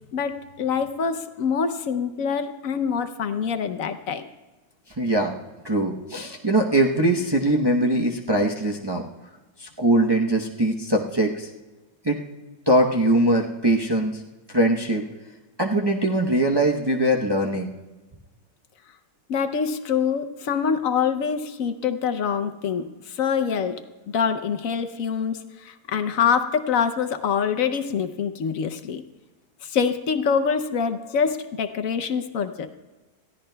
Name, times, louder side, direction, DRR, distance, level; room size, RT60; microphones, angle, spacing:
voice 1, 0.1-4.3 19.3-29.0 29.6-32.7, left 6 dB, 60° left, 9 dB, 0.9 m, -25 dB
voice 2, 5.0-5.3 5.6-9.0 9.6-11.5 12.0-12.2 12.7-14.2 14.5-15.0 15.6-17.7, right 1 dB, 35° right, -1 dB, 0.3 m, -21 dB
21.0 x 15.0 x 2.2 m, 1.2 s
omnidirectional pair, 1.9 m